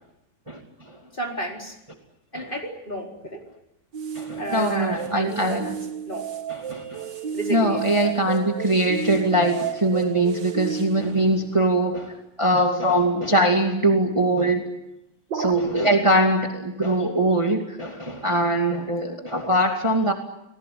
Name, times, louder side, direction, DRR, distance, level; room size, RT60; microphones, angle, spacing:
voice 1, 1.1-1.8 2.3-3.4 4.4-6.3 7.3-8.1, right 1 dB, 30° left, 1 dB, 4.4 m, -32 dB
sound 1, 3.9-11.7 15.3-15.5, right 8 dB, 90° right, 2.2 m, -32 dB
voice 2, 4.1-5.7 6.5-7.1 7.5-12.1 12.4-14.6 15.3-20.1, right 1 dB, 15° right, 3 dB, 2.5 m, -22 dB
29.5 x 20.0 x 9.6 m, 0.87 s
omnidirectional pair, 1.9 m